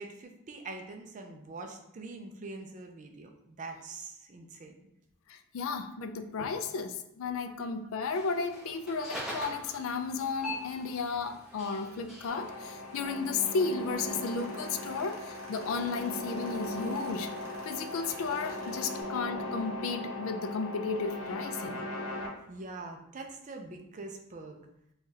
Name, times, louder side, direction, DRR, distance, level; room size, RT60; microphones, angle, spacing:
voice 1, 0.0-4.8 7.5-7.6 18.6-18.7 22.5-24.6, right 3 dB, 35° right, 3 dB, 0.4 m, -44 dB
voice 2, 5.3-17.3 17.7-21.8, left 4 dB, 70° left, 7 dB, 0.3 m, -34 dB
sound 1, 8.0-18.5, left 1 dB, 5° right, 0.8 m, -46 dB
sound 2, 12.3-22.3, left 1 dB, 85° left, 0.8 m, -39 dB
Tools, 13.9-19.0, right 1 dB, 55° right, 0.9 m, -53 dB
4.7 x 2.3 x 2.7 m, 0.81 s
head